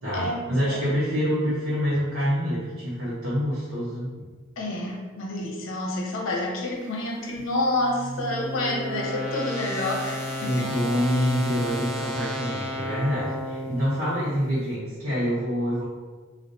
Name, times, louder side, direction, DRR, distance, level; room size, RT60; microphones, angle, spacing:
voice 1, 0.0-4.1 10.4-15.8, equal, 90° right, -9 dB, 0.8 m, -26 dB
voice 2, 4.6-10.7, left 1 dB, 70° left, -1 dB, 0.7 m, -28 dB
sound 1, 7.4-14.5, equal, 30° right, 0.5 m, -33 dB
3.1 x 2.4 x 2.6 m, 1.4 s
head